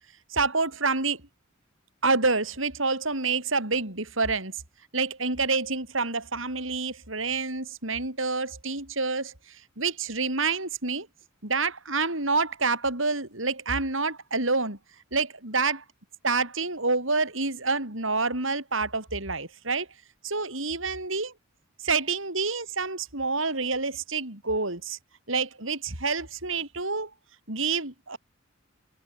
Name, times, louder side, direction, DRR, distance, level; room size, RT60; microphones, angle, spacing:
voice 1, 0.3-1.2 2.0-4.5 4.9-11.1 11.4-14.8 15.1-15.8 16.2-19.9 20.2-21.3 21.8-25.0 25.3-27.1 27.5-28.2, right 4 dB, 65° right, 7.2 m, -28 dB
head